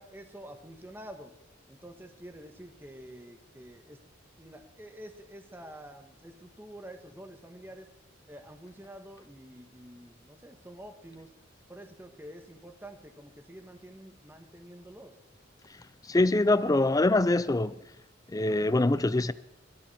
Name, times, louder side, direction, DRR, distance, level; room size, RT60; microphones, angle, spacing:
voice 1, 0.0-1.3 1.7-4.0 4.4-7.9 8.3-11.3 11.7-15.2, right 1 dB, 10° right, 1.4 m, -48 dB
voice 2, 16.1-17.8 18.3-19.3, left 2 dB, 20° left, 0.4 m, -24 dB
18.5 x 13.5 x 4.3 m
head